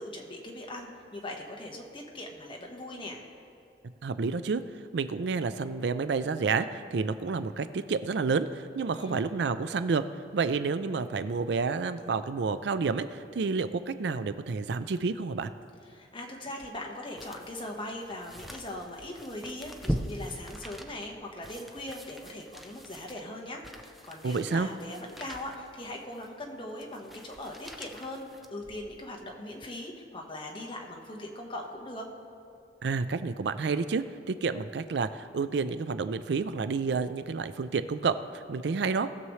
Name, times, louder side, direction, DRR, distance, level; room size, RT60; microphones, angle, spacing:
voice 1, 0.0-3.2 8.9-9.3 15.8-32.1, left 1 dB, 30° left, 0 dB, 1.4 m, -40 dB
voice 2, 4.0-4.6 4.9-10.0 10.3-15.5 24.2-24.7 32.8-39.1, right 4 dB, 70° right, 12 dB, 0.4 m, -29 dB
sound 1, 16.4-29.1 29.5-29.7, equal, ahead, 0.5 m, -42 dB
19.0 x 6.9 x 3.2 m, 2.5 s
head